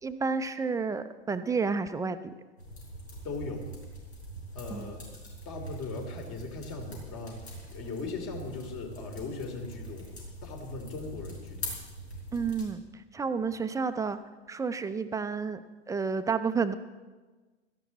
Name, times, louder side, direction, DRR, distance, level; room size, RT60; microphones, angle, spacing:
voice 1, 0.0-2.3 4.7-4.9 12.3-14.2 14.5-16.7, right 5 dB, 10° right, 11 dB, 0.6 m, -31 dB
sound 1, 2.6-12.7, right 1 dB, 80° left, 4.9 m, -43 dB
voice 2, 3.2-3.7 4.5-5.1 5.4-10.1 10.4-11.8, left 3 dB, 40° left, 3 dB, 3.1 m, -39 dB
17.0 x 14.0 x 4.1 m, 1.3 s
figure-of-eight pair, 90°, 33 cm